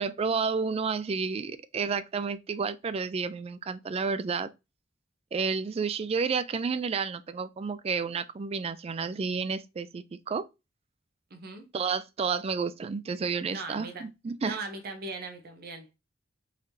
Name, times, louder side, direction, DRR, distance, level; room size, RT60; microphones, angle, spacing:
voice 1, 0.0-4.5 5.3-10.5 11.7-14.6, right 5 dB, 30° right, 0.3 m, -31 dB
voice 2, 11.3-11.7 13.5-14.1 14.4-16.0, right 3 dB, 55° right, 0.8 m, -39 dB
4.0 x 3.1 x 2.7 m
head